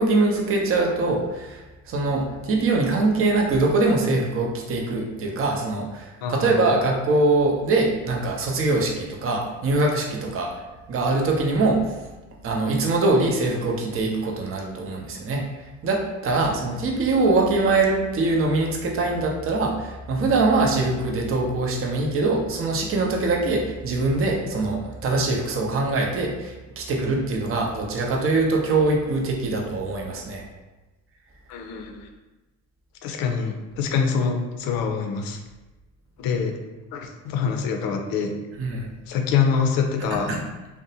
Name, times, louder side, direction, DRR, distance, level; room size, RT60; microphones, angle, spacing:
voice 1, 0.0-10.5 10.9-11.8 12.4-15.4 15.8-30.4 38.6-38.9 40.3-40.4, right 2 dB, 35° right, 0 dB, 0.6 m, -23 dB
voice 2, 6.2-6.7 16.4-16.8 31.5-32.1 33.0-35.4 36.2-36.5 36.9-38.3 39.1-40.3, left 6 dB, 60° left, 4 dB, 0.5 m, -25 dB
2.6 x 2.1 x 2.7 m, 1.1 s
hypercardioid pair, 65°, 40 cm